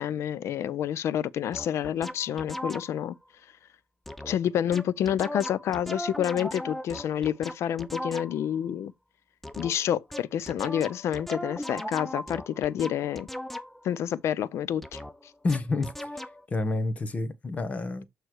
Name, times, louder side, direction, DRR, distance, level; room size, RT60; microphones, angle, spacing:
voice 1, 0.0-3.2 4.3-8.9 9.6-13.3 13.8-15.0, left 10 dB, 70° left, 0.5 m, -28 dB
sound 1, 1.5-3.1 4.1-4.4 4.7-8.6 9.4-13.9 14.8-16.4, left 1 dB, 5° left, 0.5 m, -38 dB
voice 2, 15.4-16.1 16.5-18.0, left 3 dB, 30° left, 1.1 m, -29 dB
7.7 x 3.2 x 4.6 m
cardioid pair, 130°, 5 cm